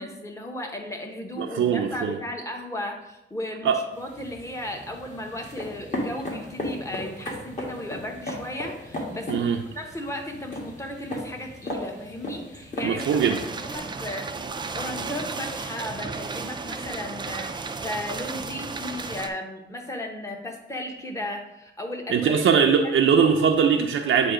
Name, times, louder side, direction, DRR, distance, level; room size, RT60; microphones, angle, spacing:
voice 1, 0.0-9.5 9.7-13.2 13.6-14.3 14.8-22.4, left 1 dB, 15° left, 2 dB, 0.9 m, -35 dB
voice 2, 1.4-2.2 3.6-3.8 9.3-9.6 12.8-13.4 22.1-24.3, right 6 dB, 80° right, 2 dB, 0.5 m, -21 dB
sound 1, 3.9-13.8, left 1 dB, 35° left, 1.4 m, -36 dB
sound 2, 13.0-19.3, right 4 dB, 25° right, 0.3 m, -34 dB
7.7 x 2.7 x 4.9 m, 0.90 s
wide cardioid pair, 135°, 20 cm